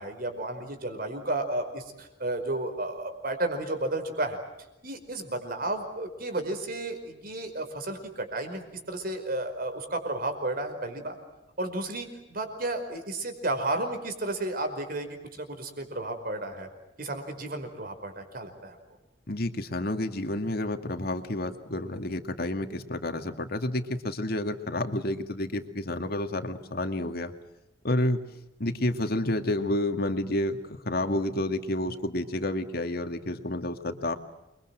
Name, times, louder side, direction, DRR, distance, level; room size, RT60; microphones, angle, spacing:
voice 1, 0.0-4.4 4.8-11.2 11.6-16.7 17.0-18.8, right 2 dB, 55° right, 6 dB, 5.2 m, -32 dB
voice 2, 19.3-27.3 27.8-28.2 28.6-34.1, left 1 dB, 55° left, 7 dB, 2.2 m, -30 dB
29.0 x 23.5 x 7.7 m, 0.96 s
head